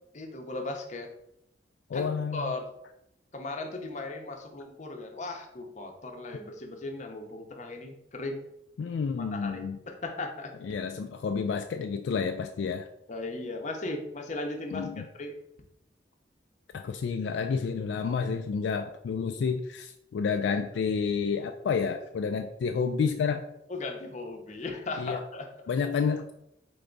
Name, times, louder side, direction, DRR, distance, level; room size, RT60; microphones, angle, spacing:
voice 1, 0.1-1.1 1.9-2.7 3.3-8.4 9.3-10.5 13.1-15.4 23.7-25.7, left 2 dB, 40° left, 3 dB, 0.7 m, -37 dB
voice 2, 1.9-2.5 8.8-9.8 10.6-12.9 14.7-15.0 16.7-23.4 25.0-25.2 25.7-26.3, left 5 dB, 75° left, 6 dB, 0.3 m, -30 dB
3.9 x 3.4 x 3.8 m, 0.78 s
head